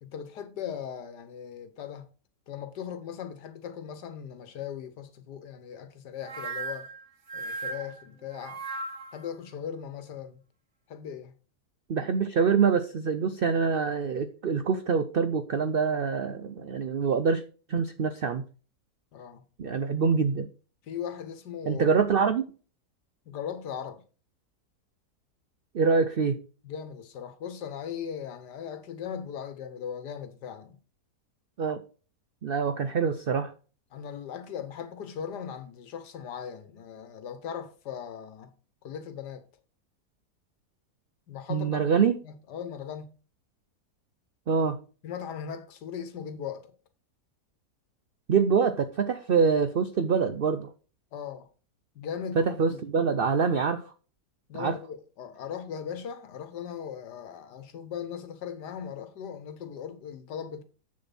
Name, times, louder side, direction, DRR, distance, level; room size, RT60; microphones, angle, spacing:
voice 1, 0.0-2.1 2.5-6.9 7.3-8.6 9.1-10.4 10.9-11.3 19.1-19.4 20.8-21.8 23.3-24.0 26.6-30.8 33.9-38.5 38.8-39.4 41.3-41.8 42.2-43.1 45.0-46.7 51.1-51.5 51.9-52.8 54.5-60.6, left 8 dB, 85° left, 1.6 m, -38 dB
sound 1, 6.2-9.3, right 3 dB, 45° right, 1.6 m, -37 dB
voice 2, 11.9-17.4 17.7-18.4 19.6-20.5 21.7-22.5 25.7-26.4 31.6-31.8 32.4-33.5 41.5-42.2 44.5-44.8 48.3-50.7 52.4-53.8 54.5-54.8, right 5 dB, 80° right, 0.5 m, -25 dB
7.9 x 6.8 x 4.1 m
omnidirectional pair, 1.7 m